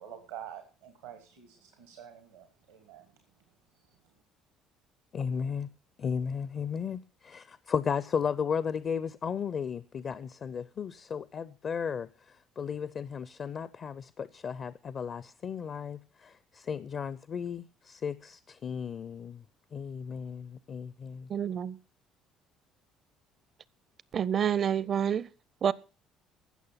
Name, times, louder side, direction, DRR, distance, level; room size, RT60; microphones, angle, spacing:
voice 1, 0.0-3.2 3.9-4.0, right 10 dB, 85° right, 1.5 m, -47 dB
voice 2, 5.1-5.7 6.0-19.4 19.7-21.3, left 6 dB, 50° left, 0.5 m, -35 dB
voice 3, 21.3-21.8 24.1-25.3 25.6-25.7, right 8 dB, 50° right, 0.6 m, -28 dB
15.5 x 6.6 x 5.7 m
hypercardioid pair, 55°, 0 cm